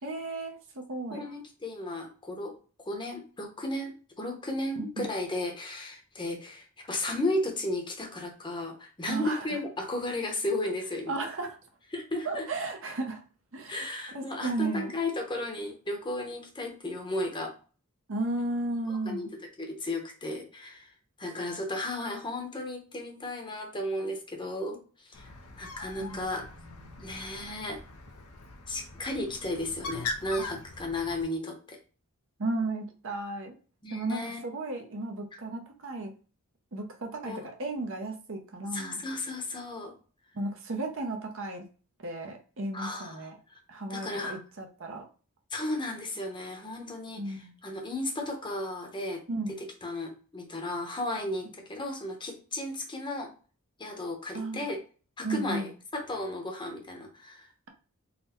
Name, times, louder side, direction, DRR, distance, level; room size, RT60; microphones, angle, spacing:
voice 1, 0.0-1.2 4.8-5.1 9.1-9.5 11.1-11.6 12.2-13.2 13.5-13.8 14.1-14.9 18.1-19.3 26.0-26.2 26.6-27.0 32.4-33.5 33.9-36.1 36.7-39.0 40.3-41.6 42.0-43.4 43.7-45.1 47.2-47.5 49.3-49.6 54.3-54.6 55.2-55.7, right 2 dB, 60° right, 4 dB, 0.8 m, -34 dB
voice 2, 1.1-2.5 2.9-11.1 11.9-12.5 13.7-17.5 18.9-19.3 19.6-20.9 21.2-25.3 25.6-26.5 27.0-27.8 28.7-31.8 33.8-34.4 37.2-37.5 38.7-39.9 42.7-43.6 43.9-44.4 45.5-49.2 49.5-53.3 53.8-54.8 55.2-57.5, left 1 dB, 20° left, 3 dB, 0.8 m, -34 dB
Bird, 25.1-31.2, left 3 dB, 75° left, 0.7 m, -42 dB
4.0 x 2.2 x 4.3 m, 0.37 s
head